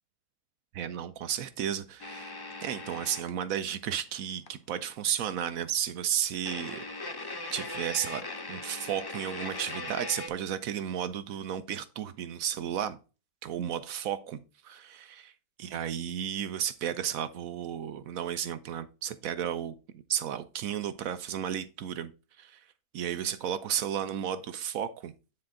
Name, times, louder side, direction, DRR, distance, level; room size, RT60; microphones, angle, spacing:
voice 1, 0.7-2.3 2.6-6.8 7.2-8.2 8.5-13.0 13.4-14.4 14.6-15.3 15.6-22.1 22.4-22.6 22.9-25.1, right 9 dB, 70° right, 12 dB, 1.0 m, -33 dB
sound 1, 2.0-3.3 4.5-4.6 4.9-5.0 6.4-10.3, left 2 dB, 30° left, 0.4 m, -39 dB
9.6 x 4.3 x 3.7 m, 0.32 s
omnidirectional pair, 1.6 m